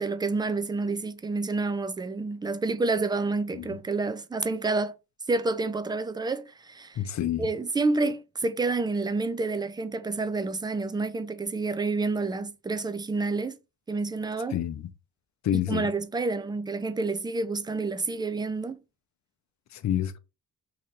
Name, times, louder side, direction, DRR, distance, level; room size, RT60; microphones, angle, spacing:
voice 1, 0.0-5.0 5.3-7.0 7.4-13.6 13.9-14.6 15.5-18.8, right 3 dB, 10° right, 0.3 m, -29 dB
voice 2, 7.0-7.4 14.5-14.8 15.4-15.9 19.8-20.2, left 11 dB, 50° left, 0.6 m, -28 dB
3.2 x 2.7 x 3.7 m
cardioid pair, 95°, 38 cm